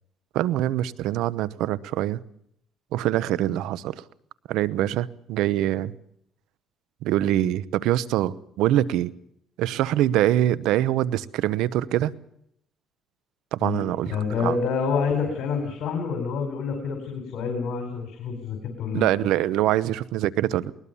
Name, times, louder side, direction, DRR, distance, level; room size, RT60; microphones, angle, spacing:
voice 1, 0.3-2.2 2.9-3.9 4.5-5.9 7.0-9.1 9.6-12.1 13.5-14.5 18.9-20.7, right 13 dB, 85° right, 18 dB, 0.9 m, -24 dB
voice 2, 14.1-19.1, left 5 dB, 70° left, 4 dB, 4.9 m, -27 dB
21.0 x 20.0 x 7.1 m, 0.72 s
cardioid pair, 95°, 0 cm